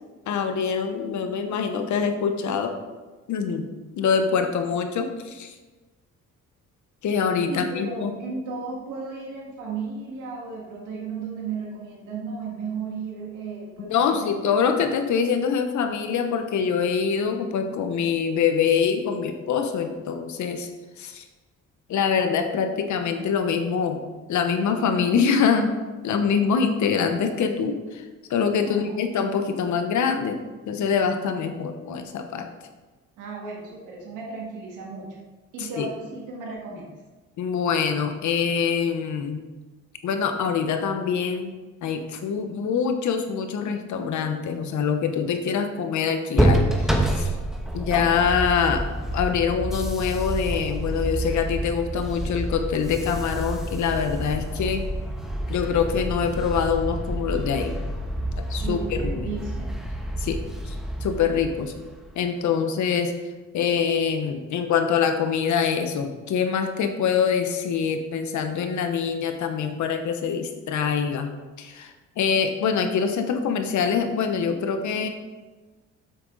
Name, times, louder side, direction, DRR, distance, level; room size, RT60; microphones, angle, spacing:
voice 1, 0.3-2.7 3.3-3.7 4.0-5.5 7.0-8.1 13.8-20.7 21.0-21.2 21.9-25.7 26.0-28.0 28.3-30.4 30.7-32.5 35.6-35.9 37.4-39.4 40.0-41.5 41.8-47.3 47.7-48.9 49.1-54.8 55.5-57.8 58.4-59.3 60.2-60.4 60.7-60.8 61.0-61.7 62.1-63.1 63.5-71.3 71.6-75.1, left 6 dB, 75° left, 6 dB, 1.0 m, -24 dB
voice 2, 7.5-14.3 28.7-29.0 33.2-35.1 35.5-36.9 58.6-59.7, right 4 dB, 90° right, -3 dB, 2.0 m, -34 dB
sound 1, 46.3-62.1, right 1 dB, ahead, 1.1 m, -28 dB
8.1 x 6.2 x 4.0 m, 1.2 s
cardioid pair, 90°, 30 cm